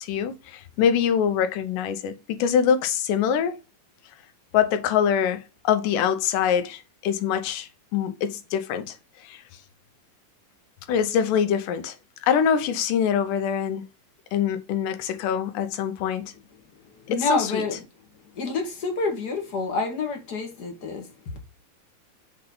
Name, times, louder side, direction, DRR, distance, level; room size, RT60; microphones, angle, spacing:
voice 1, 0.0-3.6 4.5-9.0 9.3-9.4 10.9-11.9 12.2-13.8 14.3-16.3 17.1-17.6, left 8 dB, 75° left, 2.4 m, -24 dB
voice 2, 17.1-17.8 18.3-21.0, left 3 dB, 45° left, 1.4 m, -27 dB
6.6 x 3.9 x 3.9 m
omnidirectional pair, 4.0 m